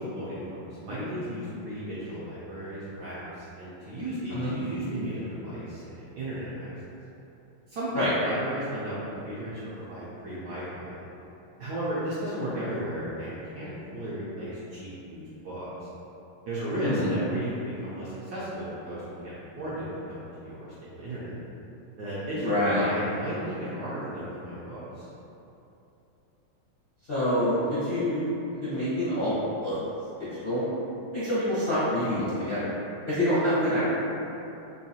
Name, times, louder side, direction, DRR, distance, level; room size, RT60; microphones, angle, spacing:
voice 1, 0.0-6.7 7.7-11.0 11.6-15.9 16.5-21.4 22.0-25.1, right 1 dB, 70° right, -11 dB, 1.0 m, -35 dB
voice 2, 22.4-22.8 27.1-28.3 28.6-29.3 29.6-29.8 30.2-30.6 31.1-32.7 33.1-33.8, left 1 dB, 55° left, -15 dB, 0.6 m, -26 dB
3.8 x 2.6 x 2.8 m, 2.9 s
omnidirectional pair, 2.3 m